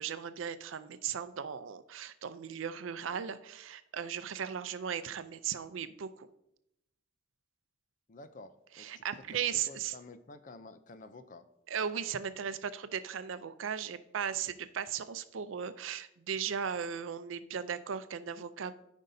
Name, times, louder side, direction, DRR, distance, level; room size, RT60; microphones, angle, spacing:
voice 1, 0.0-6.3 8.8-9.9 11.7-18.8, right 8 dB, 85° right, 13 dB, 0.5 m, -37 dB
voice 2, 8.1-11.4, left 3 dB, 40° left, 11 dB, 0.5 m, -51 dB
13.0 x 5.3 x 2.7 m, 0.83 s
head